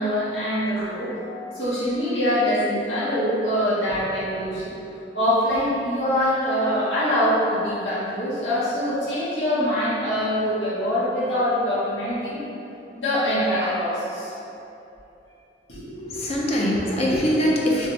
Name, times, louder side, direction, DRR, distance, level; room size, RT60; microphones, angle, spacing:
voice 1, 0.0-4.7 5.1-12.4 13.0-14.3 15.7-15.8, equal, 90° left, -11 dB, 1.0 m, -24 dB
voice 2, 15.9-17.9, equal, 35° left, -3 dB, 0.5 m, -23 dB
3.2 x 2.5 x 3.1 m, 2.9 s
head